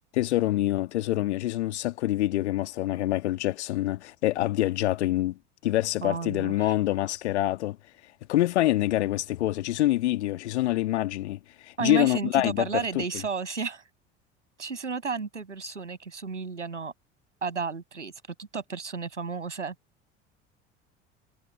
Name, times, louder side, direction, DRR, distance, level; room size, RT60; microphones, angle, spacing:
voice 1, 0.1-5.4 5.6-7.8 8.3-11.4 11.7-12.7 12.9-13.0, left 15 dB, 70° left, 2.0 m, -26 dB
voice 2, 6.0-6.7 11.8-13.8 14.6-16.9 17.4-18.1 18.4-19.7, right 5 dB, 85° right, 7.6 m, -32 dB
figure-of-eight pair, 65°, 35 cm